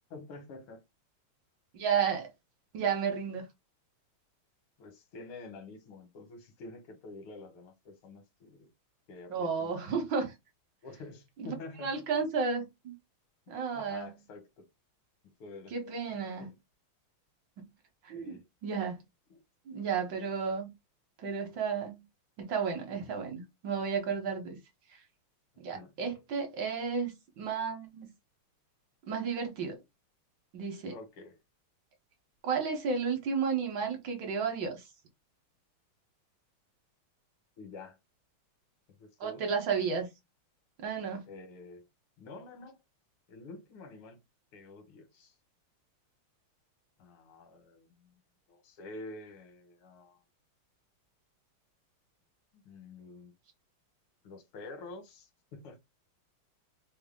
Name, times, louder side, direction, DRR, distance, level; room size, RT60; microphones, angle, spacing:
voice 1, 0.1-0.8 4.8-8.7 9.1-9.8 10.8-12.2 13.7-14.7 15.4-15.7 16.4-16.6 18.1-18.4 19.3-19.4 25.7-25.9 30.9-31.4 37.6-38.0 39.0-39.4 41.3-41.8 42.2-42.8 43.3-44.2 44.5-45.3 47.0-48.1 48.5-50.2 52.5-53.3 54.2-55.8, left 3 dB, 85° left, 1.8 m, -48 dB
voice 2, 1.7-2.3 2.7-3.4 9.3-10.3 11.4-11.5 11.8-12.9 13.5-14.1 15.7-16.5 17.6-17.7 18.0-19.0 19.7-20.7 21.2-22.0 22.4-24.6 25.6-28.1 29.1-29.8 30.5-31.0 32.4-34.8 39.2-40.1 40.8-41.2, right 6 dB, 65° right, 1.4 m, -32 dB
3.8 x 2.0 x 3.5 m
omnidirectional pair, 2.3 m